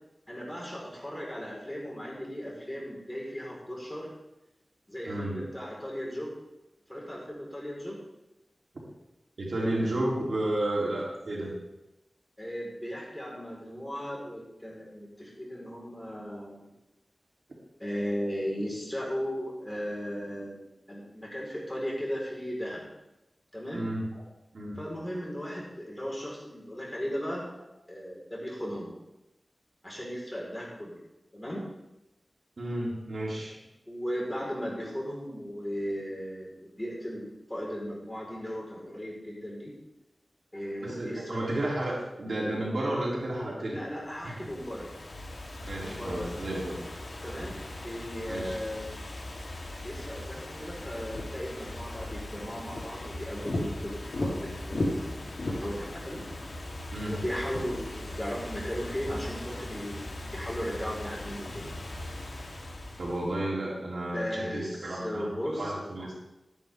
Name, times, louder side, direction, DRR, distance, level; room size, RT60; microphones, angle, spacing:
voice 1, 0.3-4.1 4.9-6.3 6.9-8.0 12.4-16.7 17.8-22.9 23.5-23.8 24.8-27.4 27.9-28.9 29.8-31.0 31.3-31.6 33.9-39.7 40.5-41.4 43.7-44.9 45.8-46.3 47.2-48.9 49.8-56.2 57.0-61.7 64.1-65.7, equal, 10° left, -4 dB, 4.8 m, -36 dB
voice 2, 5.1-5.4 8.7-8.8 9.4-11.5 23.7-24.1 24.5-24.8 32.6-33.6 40.8-43.8 44.2-44.4 45.7-46.8 48.3-48.6 56.9-57.2 63.0-65.3 65.5-66.1, right 1 dB, 75° right, -4 dB, 3.5 m, -32 dB
Ocean / Fireworks, 44.1-63.4, left 1 dB, 65° left, 1.9 m, -38 dB
12.0 x 10.5 x 3.7 m, 0.94 s
wide cardioid pair, 65°, 0 cm